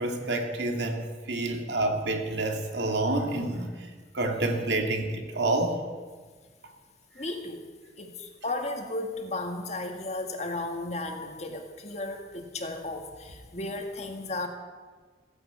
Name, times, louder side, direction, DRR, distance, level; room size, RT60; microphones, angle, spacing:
voice 1, 0.0-3.9 4.1-5.8, right 2 dB, 70° right, 3 dB, 2.2 m, -28 dB
voice 2, 7.2-7.6 8.0-14.5, left 2 dB, 35° left, 4 dB, 1.8 m, -34 dB
15.5 x 10.5 x 8.2 m, 1.5 s
head